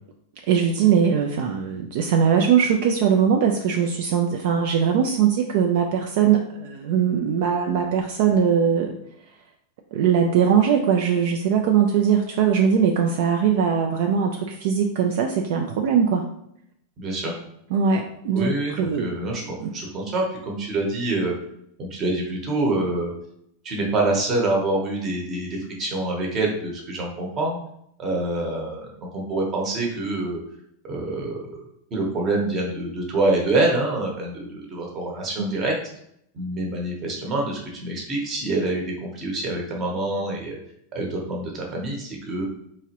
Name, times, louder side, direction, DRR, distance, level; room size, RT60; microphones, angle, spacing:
voice 1, 0.5-8.9 9.9-16.2 17.7-19.7 35.4-35.6, right 7 dB, 50° right, 2 dB, 0.4 m, -21 dB
voice 2, 17.0-17.3 18.3-19.4 19.7-21.3 21.8-23.1 23.6-25.5 25.8-27.6 28.0-28.9 29.1-30.4 30.9-31.6 31.9-35.7 36.3-40.6 40.9-42.4, right 2 dB, 20° right, -1 dB, 0.9 m, -26 dB
4.7 x 2.9 x 2.9 m, 0.73 s
supercardioid pair, 175°, 0 cm